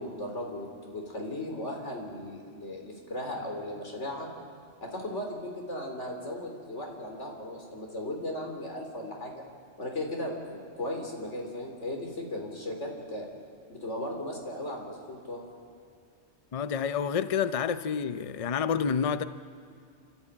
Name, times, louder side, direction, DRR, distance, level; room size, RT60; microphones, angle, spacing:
voice 1, 0.0-4.3 4.8-9.4 9.8-13.3 13.7-15.4, left 1 dB, 70° left, 1 dB, 3.7 m, -36 dB
voice 2, 16.5-19.2, left 7 dB, 40° left, 12 dB, 0.6 m, -28 dB
28.5 x 13.5 x 8.8 m, 2.4 s
omnidirectional pair, 1.2 m